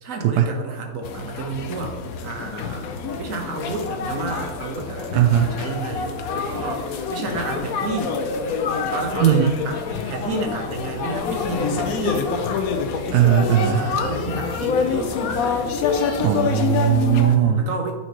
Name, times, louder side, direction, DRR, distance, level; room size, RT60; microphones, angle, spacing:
voice 1, 0.0-2.8 3.2-8.2 8.9-12.3 13.6-15.1 17.2-17.9, right 3 dB, 45° right, 2 dB, 1.2 m, -31 dB
sound 1, 1.0-17.3, left 5 dB, 85° left, 0.7 m, -26 dB
voice 2, 5.1-5.6 9.2-9.6 13.1-13.9 16.2-17.7, right 10 dB, 85° right, 5 dB, 0.9 m, -18 dB
9.0 x 6.1 x 3.0 m, 1.3 s
omnidirectional pair, 2.4 m